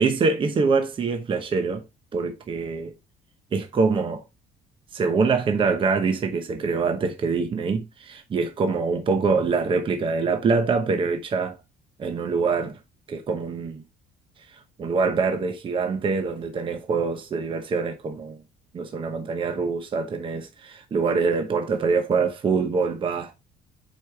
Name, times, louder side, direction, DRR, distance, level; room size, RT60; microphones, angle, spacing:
voice 1, 0.0-1.8 2.1-2.9 3.5-4.2 4.9-11.6 12.0-12.8 13.1-13.8 14.8-18.4 18.7-23.3, right 4 dB, 30° right, 0.9 m, -24 dB
7.8 x 4.9 x 3.4 m
cardioid pair, 145°, 17 cm